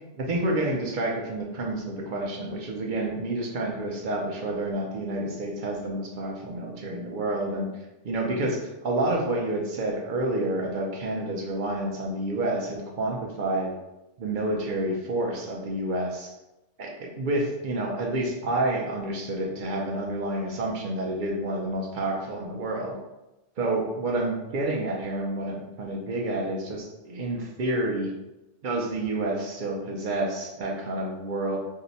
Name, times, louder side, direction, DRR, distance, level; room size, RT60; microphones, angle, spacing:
voice 1, 0.1-13.7 14.2-16.3 16.8-22.9 23.6-28.1 28.6-31.6, right 1 dB, 55° right, -1 dB, 0.6 m, -29 dB
2.7 x 2.1 x 3.8 m, 0.99 s
omnidirectional pair, 1.2 m